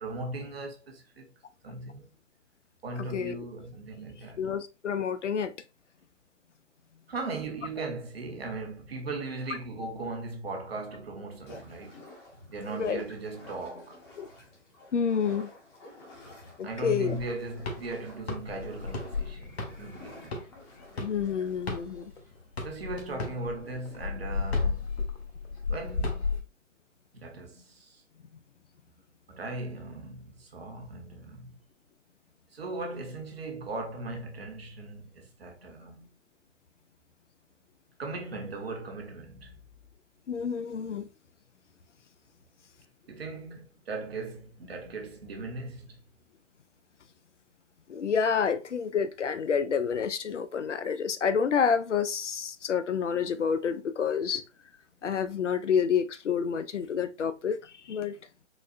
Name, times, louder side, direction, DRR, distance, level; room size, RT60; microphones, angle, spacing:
voice 1, 0.0-1.3 1.6-2.1 2.8-4.4 7.1-12.0 12.5-14.0 16.6-20.5 22.6-24.9 25.7-26.4 27.1-28.0 29.3-31.6 32.5-36.1 38.0-39.6 43.1-46.0, right 2 dB, 55° right, 0.9 m, -38 dB
voice 2, 3.0-3.5 4.4-5.5 12.7-13.0 14.2-14.3 14.9-15.5 16.6-17.2 21.0-22.1 40.3-41.1 47.9-54.4 55.0-58.2, left 6 dB, 75° left, 0.5 m, -29 dB
sound 1, 11.5-22.5, left 2 dB, 20° left, 0.8 m, -51 dB
sound 2, 17.1-22.2 22.6-26.4, left 4 dB, 55° left, 0.9 m, -33 dB
4.0 x 2.1 x 2.4 m
figure-of-eight pair, 135°, 37 cm